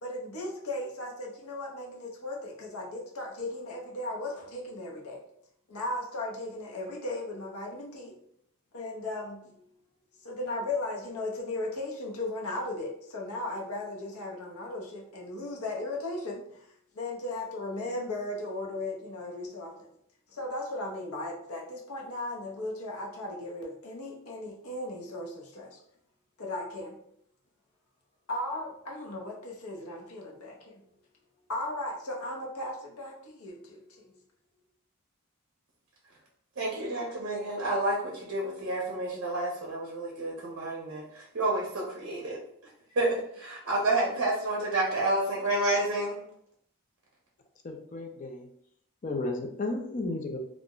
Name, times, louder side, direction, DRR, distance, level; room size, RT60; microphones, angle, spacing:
voice 1, 0.0-5.2 5.7-8.1 8.7-9.6 10.2-19.9 20.3-25.8 26.4-27.0 28.3-30.8 31.5-34.2, left 2 dB, 80° left, -1 dB, 0.7 m, -36 dB
voice 2, 36.6-42.4 43.0-46.2, right 2 dB, 55° right, -3 dB, 0.6 m, -29 dB
voice 3, 47.6-48.5 49.0-50.4, left 2 dB, 35° left, 4 dB, 0.4 m, -33 dB
2.4 x 2.0 x 3.6 m, 0.70 s
head